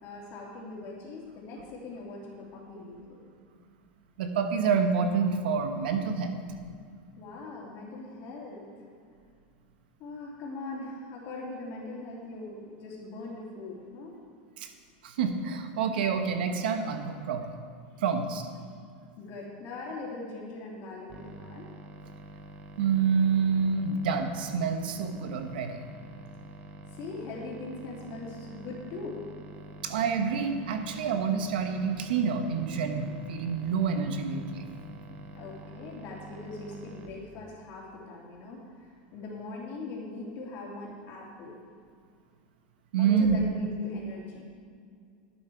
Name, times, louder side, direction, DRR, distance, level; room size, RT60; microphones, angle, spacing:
voice 1, 0.0-3.2 7.2-8.7 10.0-14.2 19.2-21.7 26.9-29.2 35.4-38.9 39.1-41.6 43.0-44.4, left 3 dB, 45° left, -3 dB, 3.0 m, -41 dB
voice 2, 4.2-6.3 14.6-14.7 15.0-17.6 18.0-18.4 22.8-25.8 29.8-34.6 42.9-43.4, right 6 dB, 80° right, 6 dB, 1.2 m, -27 dB
sound 1, 21.1-37.1, right 1 dB, 35° right, 1.1 m, -47 dB
11.5 x 8.8 x 4.6 m, 2.3 s
supercardioid pair, 130°, 5 cm